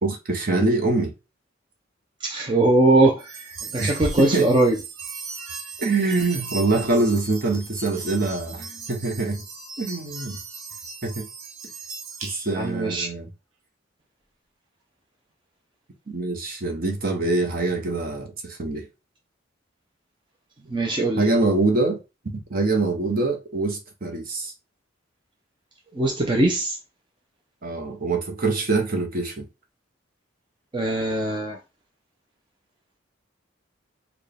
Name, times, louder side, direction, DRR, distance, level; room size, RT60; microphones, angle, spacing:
voice 1, 0.0-1.1 3.8-4.6 5.8-9.4 9.8-10.4 11.0-11.3 12.2-13.3 16.1-18.9 21.2-22.0 22.5-24.5 27.6-29.4, right 3 dB, 45° right, 0.9 m, -24 dB
voice 2, 2.2-4.7 12.6-13.1 20.7-21.2 25.9-26.8 30.7-31.6, right 2 dB, 25° right, 0.5 m, -21 dB
sound 1, 3.2-12.7, right 4 dB, 90° right, 0.9 m, -37 dB
4.3 x 2.2 x 3.4 m
head